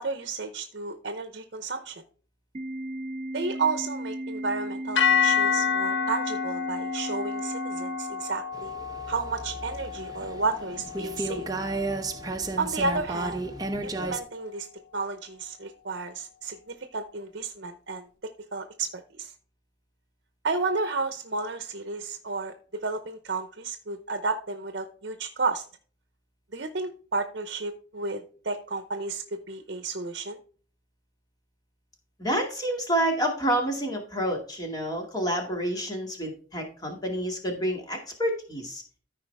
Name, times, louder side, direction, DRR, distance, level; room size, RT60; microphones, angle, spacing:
voice 1, 0.0-2.0 3.3-8.8 9.1-11.5 12.6-13.5 13.8-14.7 14.9-18.1 18.5-19.3 20.4-25.6 26.5-30.4, right 3 dB, 60° right, 8 dB, 0.8 m, -32 dB
Organ, 2.5-8.6, right 1 dB, 35° right, 2.0 m, -35 dB
sound 1, 5.0-13.2, left 7 dB, 75° left, 1.2 m, -30 dB
sound 2, 8.5-14.2, right 2 dB, 20° right, 0.7 m, -33 dB
voice 2, 32.2-38.8, right 1 dB, 20° left, 1 dB, 2.3 m, -28 dB
14.0 x 5.0 x 3.4 m, 0.43 s
head